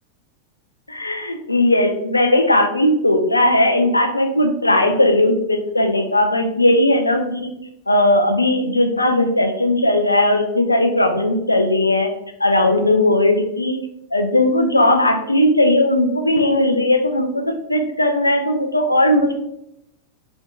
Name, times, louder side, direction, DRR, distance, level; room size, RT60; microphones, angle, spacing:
voice 1, 0.9-7.5 7.9-12.1 12.4-13.8 14.1-19.3, left 1 dB, 85° left, 5 dB, 0.4 m, -17 dB
3.9 x 2.5 x 2.4 m, 0.83 s
figure-of-eight pair, 90°, 0 cm